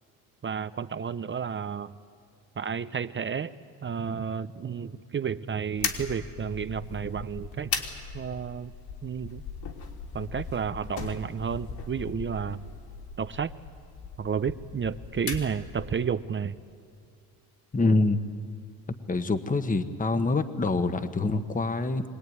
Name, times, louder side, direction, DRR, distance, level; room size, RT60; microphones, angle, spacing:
voice 1, 0.4-2.0 2.6-3.5 3.8-7.7 8.1-8.7 9.0-9.4 10.1-12.7 13.2-13.5 14.2-16.6, right 7 dB, 30° right, 13 dB, 0.7 m, -31 dB
sound 1, 5.8-16.1, left 6 dB, 65° left, 3.2 m, -38 dB
voice 2, 17.7-18.2 19.1-22.0, left 3 dB, 20° left, 9 dB, 1.3 m, -25 dB
23.5 x 19.0 x 9.5 m, 2.4 s
cardioid pair, 90°, 38 cm